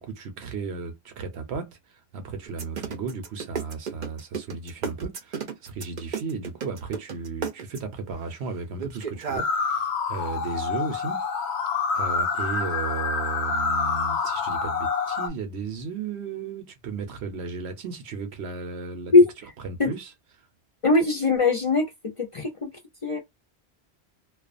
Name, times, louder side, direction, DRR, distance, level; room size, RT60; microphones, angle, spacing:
voice 1, 0.0-11.2 11.9-19.1 19.6-20.1, right 4 dB, 80° right, 1.0 m, -34 dB
sound 1, 2.5-8.0 8.8-9.4, right 6 dB, 50° right, 0.6 m, -32 dB
sound 2, 9.4-15.3, left 5 dB, 85° left, 0.9 m, -27 dB
voice 2, 20.8-21.8 22.3-22.5 23.0-23.2, left 3 dB, 40° left, 0.5 m, -19 dB
2.4 x 2.3 x 2.4 m
omnidirectional pair, 1.1 m